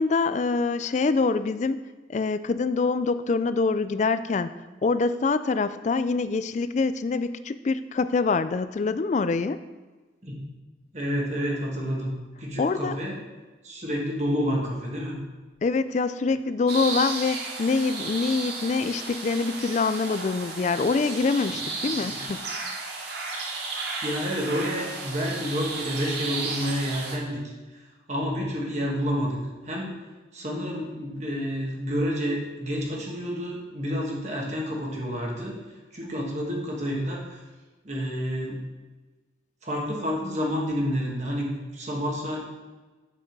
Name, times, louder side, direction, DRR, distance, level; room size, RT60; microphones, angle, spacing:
voice 1, 0.0-1.8 2.1-4.5 4.8-9.6 12.6-13.0 15.6-22.4, left 4 dB, 40° left, 12 dB, 0.3 m, -25 dB
voice 2, 10.9-12.1 12.4-13.2 13.6-15.2 22.1-22.2 24.0-27.4 27.7-27.8 28.1-29.4 29.6-29.9 30.3-35.5 35.9-37.4 37.8-38.6 39.6-42.4, equal, 35° right, -2 dB, 1.6 m, -29 dB
sound 1, 16.7-27.2, right 3 dB, 55° right, 1.2 m, -34 dB
7.8 x 6.1 x 4.6 m, 1.3 s
head